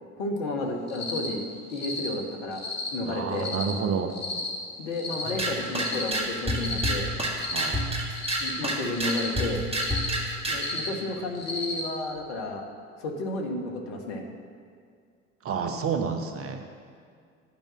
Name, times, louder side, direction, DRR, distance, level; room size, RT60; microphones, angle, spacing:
voice 1, 0.2-1.4 1.7-2.6 2.9-3.5 4.8-7.1 8.4-9.7 10.5-12.6 13.0-14.2, left 2 dB, 70° left, 2 dB, 1.3 m, -32 dB
Cricket, 0.9-1.3 1.7-2.1 2.5-2.9 3.3-3.7 4.1-4.5 4.9-5.3 5.7-6.1 6.5-6.9 7.3-7.7 8.1-8.5 8.9-9.3 9.7-10.1 10.5-10.9 11.3-11.8, left 3 dB, 40° left, 2.3 m, -33 dB
voice 2, 3.0-4.2 7.5-7.8 15.4-16.8, right 6 dB, 35° right, 6 dB, 1.0 m, -30 dB
sound 1, 5.2-10.7, right 1 dB, 15° right, 1.6 m, -29 dB
9.0 x 5.2 x 7.4 m, 2.2 s
figure-of-eight pair, 60°, 37 cm